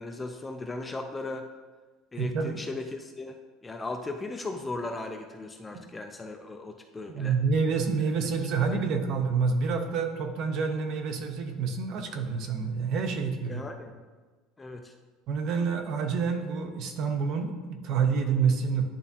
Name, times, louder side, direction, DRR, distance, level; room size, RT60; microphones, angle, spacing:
voice 1, 0.0-1.5 2.1-7.4 8.6-8.8 13.5-14.0 14.6-14.9, left 2 dB, 10° left, 4 dB, 0.3 m, -37 dB
voice 2, 2.2-2.6 7.1-13.6 15.3-18.8, right 5 dB, 45° right, 6 dB, 0.6 m, -28 dB
10.5 x 3.5 x 2.8 m, 1.3 s
cardioid pair, 170°, 0 cm